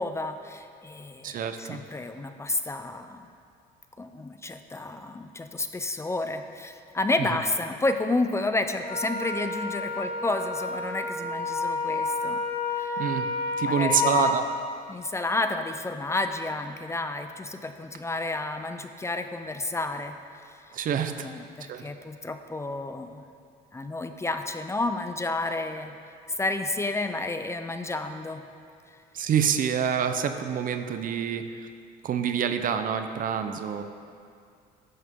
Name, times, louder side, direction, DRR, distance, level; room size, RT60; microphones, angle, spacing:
voice 1, 0.0-3.3 4.0-12.4 12.7-13.0 13.6-14.1 14.9-20.5 21.2-23.2 23.7-25.9 26.4-28.4, left 2 dB, 15° left, 8 dB, 0.6 m, -31 dB
voice 2, 1.2-1.8 13.0-13.2 13.6-14.5 20.7-21.3 21.7-21.8 29.1-31.7 32.0-33.8, right 8 dB, 55° right, 8 dB, 0.8 m, -27 dB
Wind instrument woodwind instrument, 8.8-14.3, left 3 dB, 45° left, 2.6 m, -30 dB
14.0 x 11.0 x 3.8 m, 2.3 s
cardioid pair, 110°, 17 cm